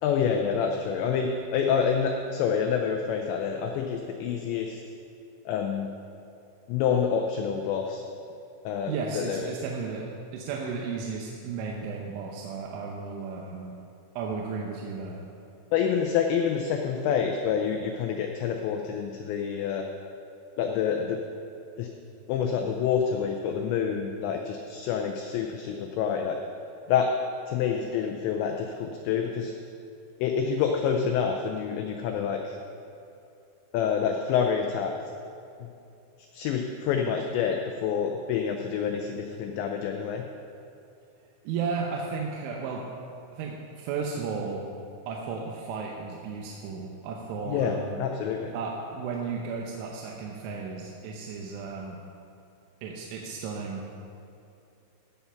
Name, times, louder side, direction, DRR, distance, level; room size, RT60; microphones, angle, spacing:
voice 1, 0.0-4.8 5.5-5.9 6.7-8.0 8.7-9.4 15.7-19.9 20.6-21.2 21.8-21.9 22.3-26.4 26.9-27.1 27.5-29.5 30.2-32.6 33.7-34.9 35.6-35.7 36.3-40.2 47.5-48.5, left 7 dB, 85° left, 3 dB, 2.6 m, -27 dB
voice 2, 8.9-10.1 10.3-13.7 14.2-15.2 41.4-42.8 43.3-44.6 45.1-48.0 48.5-52.0 52.8-53.9, right 5 dB, 80° right, -1 dB, 3.1 m, -34 dB
16.0 x 5.7 x 5.7 m, 2.7 s
omnidirectional pair, 5.8 m